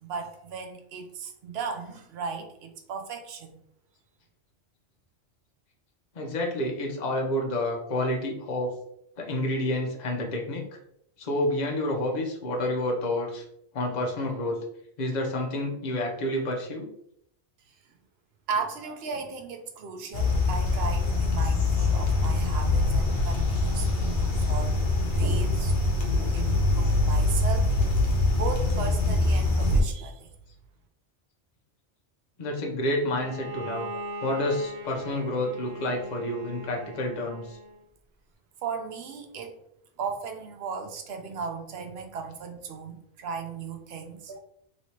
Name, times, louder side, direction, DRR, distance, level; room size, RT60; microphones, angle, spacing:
voice 1, 0.0-3.6 18.5-24.8 25.1-27.8 28.3-30.3 38.6-39.6 40.0-44.4, right 5 dB, 65° right, 5 dB, 0.8 m, -36 dB
voice 2, 6.1-8.7 9.2-10.6 11.2-13.4 13.7-14.6 15.0-16.9 32.4-33.9 34.2-37.6, left 1 dB, 45° left, 0 dB, 0.7 m, -29 dB
sound 1, 20.1-29.8, left 2 dB, 75° left, 1.0 m, -24 dB
Bowed string instrument, 33.1-37.8, right 1 dB, 25° right, 0.5 m, -39 dB
3.1 x 3.1 x 2.8 m, 0.74 s
omnidirectional pair, 1.2 m